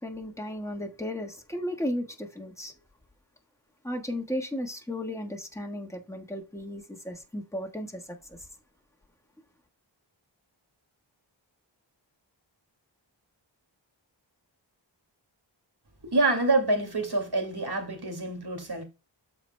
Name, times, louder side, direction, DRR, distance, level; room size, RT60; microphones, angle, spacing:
voice 1, 0.0-2.7 3.8-8.4, left 1 dB, 5° left, 1.4 m, -35 dB
voice 2, 16.0-18.8, right 2 dB, 60° right, 2.3 m, -26 dB
13.5 x 4.8 x 2.2 m
wide cardioid pair, 65°, 45 cm